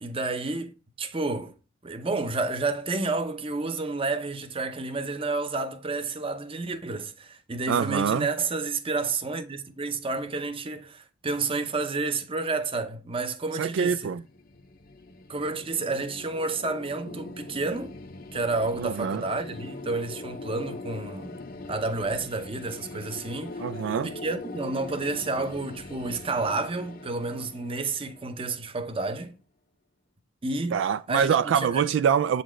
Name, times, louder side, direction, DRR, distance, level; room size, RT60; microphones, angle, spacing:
voice 1, 0.0-1.5 1.8-14.1 15.3-17.9 18.3-21.4 21.7-23.6 24.0-29.4 30.4-31.3 31.5-31.8, right 3 dB, 30° right, 0.7 m, -30 dB
voice 2, 7.7-8.3 13.6-14.2 18.8-19.2 23.6-24.1 30.7-32.4, right 7 dB, 75° right, 0.3 m, -25 dB
sound 1, 13.9-28.8, left 2 dB, 50° left, 0.7 m, -42 dB
7.8 x 4.2 x 3.1 m
head